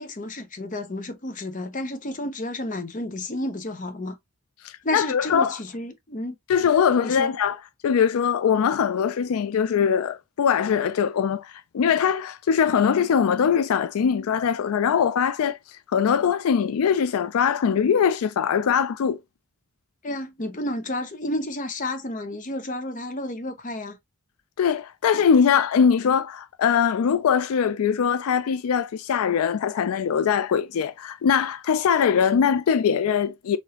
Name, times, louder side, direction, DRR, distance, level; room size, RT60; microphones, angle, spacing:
voice 1, 0.0-4.2 4.8-6.4 7.0-7.4 20.0-24.0, left 1 dB, 35° left, 0.8 m, -31 dB
voice 2, 4.6-5.6 6.5-7.6 7.8-15.6 15.9-19.2 24.6-33.6, left 7 dB, 80° left, 0.4 m, -22 dB
4.8 x 2.7 x 2.9 m
head